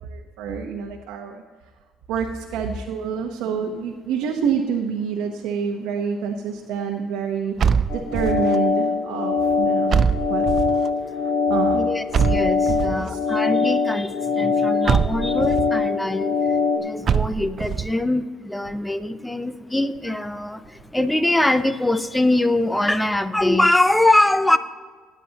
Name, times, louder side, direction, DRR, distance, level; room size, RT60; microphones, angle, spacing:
voice 1, 0.0-1.4 2.1-7.5 7.9-10.4 11.0-11.8 12.9-13.2, right 6 dB, 85° right, 1 dB, 0.9 m, -27 dB
sound 1, 7.6-8.6 9.9-10.9 12.1-13.1 14.9-15.7 17.1-17.9, right 7 dB, 40° right, 0.4 m, -22 dB
sound 2, 7.9-16.8, left 4 dB, 60° left, 2.5 m, -22 dB
voice 2, 11.7-24.6, left 1 dB, 5° left, 12 dB, 0.6 m, -22 dB
18.5 x 9.2 x 2.9 m, 1.5 s
cardioid pair, 115°, 0 cm